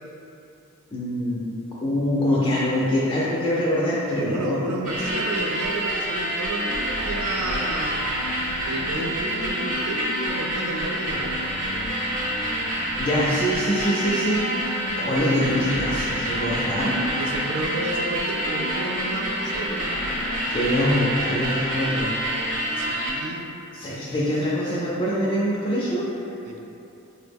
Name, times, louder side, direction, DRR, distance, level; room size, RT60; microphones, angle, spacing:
voice 1, 0.9-1.5 1.8-4.6 13.0-17.0 20.5-22.2 23.7-26.1, equal, 25° left, -7 dB, 0.3 m, -24 dB
voice 2, 4.2-8.1 8.6-11.5 17.1-20.0 22.8-23.5 26.4-26.6, right 2 dB, 90° right, 1 dB, 0.4 m, -31 dB
sound 1, 4.8-23.1, equal, 40° right, 0.7 m, -27 dB
4.3 x 2.0 x 3.3 m, 2.9 s
head